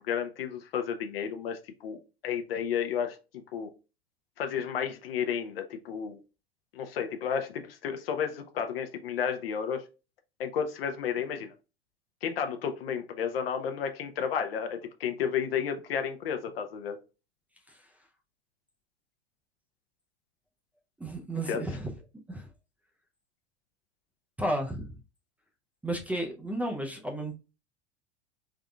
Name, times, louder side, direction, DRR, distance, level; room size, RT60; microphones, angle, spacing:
voice 1, 0.0-3.7 4.4-6.2 6.7-9.8 10.4-11.5 12.2-17.0 21.5-21.6, left 7 dB, 65° left, 0.7 m, -32 dB
voice 2, 21.0-21.9 22.3-22.5 24.4-25.0 25.8-27.3, right 1 dB, 5° right, 0.4 m, -33 dB
3.7 x 3.5 x 2.2 m
figure-of-eight pair, 85°, 32 cm